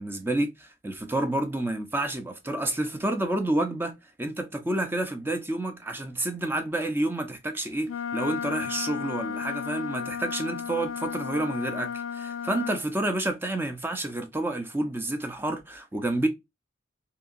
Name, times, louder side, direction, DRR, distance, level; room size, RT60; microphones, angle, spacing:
voice 1, 0.0-3.9 4.2-16.3, right 1 dB, 10° right, 0.4 m, -29 dB
Wind instrument woodwind instrument, 7.9-12.8, left 7 dB, 85° left, 0.4 m, -34 dB
2.7 x 2.7 x 2.4 m
head